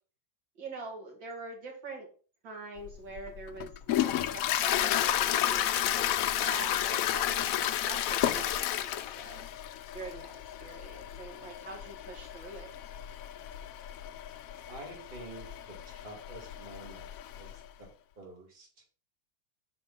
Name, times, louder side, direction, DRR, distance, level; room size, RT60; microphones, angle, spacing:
voice 1, 0.6-2.1 2.4-7.4 7.8-9.5 9.9-10.3 10.6-12.7, right 3 dB, 80° right, 0 dB, 2.7 m, -44 dB
Toilet flush, 2.9-17.6, left 11 dB, 90° left, 0.7 m, -32 dB
voice 2, 14.7-17.9 18.2-18.8, right 1 dB, 25° right, -1 dB, 2.3 m, -48 dB
6.2 x 5.0 x 5.4 m, 0.39 s
omnidirectional pair, 2.0 m